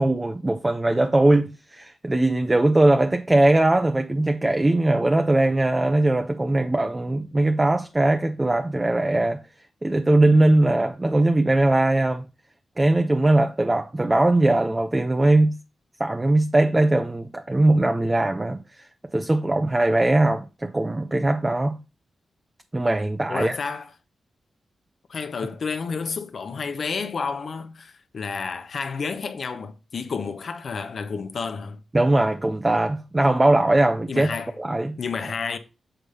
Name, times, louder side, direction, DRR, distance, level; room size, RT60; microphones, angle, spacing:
voice 1, 0.0-9.4 9.8-12.2 12.8-15.5 16.0-18.8 19.1-21.8 22.7-23.6 31.9-34.3 34.6-35.0, right 2 dB, 20° right, 0.7 m, -20 dB
voice 2, 23.3-23.9 25.1-31.8 34.1-34.5 35.0-35.6, left 5 dB, 65° left, 0.9 m, -30 dB
7.9 x 3.3 x 5.5 m
cardioid pair, 55°, 0 cm